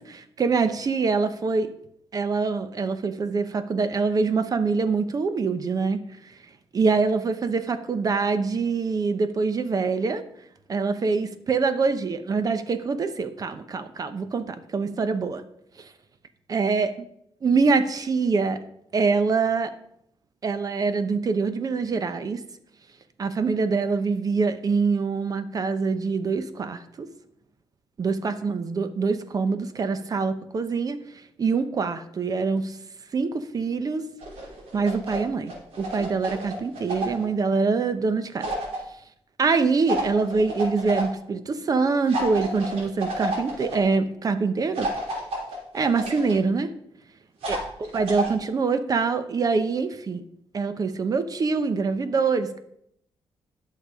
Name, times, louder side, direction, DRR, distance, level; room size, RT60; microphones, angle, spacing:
voice 1, 0.0-1.7 2.1-6.0 6.7-10.2 10.7-15.4 15.8-15.9 16.5-16.9 17.4-18.6 18.9-19.7 20.4-22.4 23.2-27.1 28.0-31.0 31.4-32.8 33.1-34.1 34.7-38.5 39.4-44.9 45.7-46.7 47.5-47.6 47.9-50.2 50.5-52.6, right 4 dB, 40° right, 11 dB, 0.9 m, -24 dB
sound 1, 34.2-35.2 35.5-37.2 38.4-38.8 39.9-41.0 42.1-43.8 44.7-46.3 47.4-48.3, right 1 dB, 80° right, 3.0 m, -30 dB
10.5 x 6.7 x 4.9 m, 0.73 s
cardioid pair, 125°, 10 cm